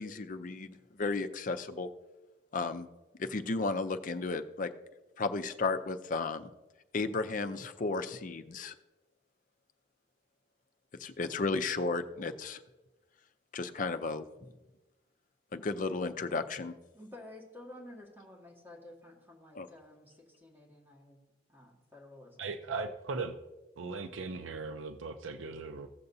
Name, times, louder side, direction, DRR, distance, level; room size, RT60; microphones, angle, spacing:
voice 1, 0.0-1.9 2.5-2.9 3.2-4.7 5.2-6.5 6.9-8.7 11.0-12.6 13.5-14.3 15.5-16.7 19.5-19.7, left 3 dB, 45° left, 9 dB, 0.5 m, -34 dB
voice 2, 16.9-21.2 21.5-22.5, left 1 dB, 10° right, -3 dB, 1.8 m, -52 dB
voice 3, 22.4-23.4 23.8-25.9, right 4 dB, 90° right, 8 dB, 0.6 m, -38 dB
16.0 x 6.8 x 2.7 m, 1.1 s
head